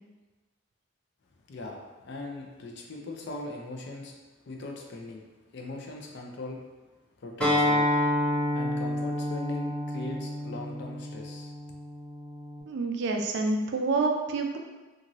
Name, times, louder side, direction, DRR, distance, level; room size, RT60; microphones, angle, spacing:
voice 1, 1.5-4.1 4.5-5.3 5.5-6.6 7.2-7.9 8.5-11.5, left 2 dB, 55° left, 0 dB, 0.4 m, -39 dB
Acoustic guitar, 7.4-12.6, left 1 dB, 5° left, 0.7 m, -29 dB
voice 2, 12.7-14.6, right 3 dB, 55° right, 3 dB, 0.3 m, -27 dB
2.6 x 2.5 x 2.9 m, 1.2 s
head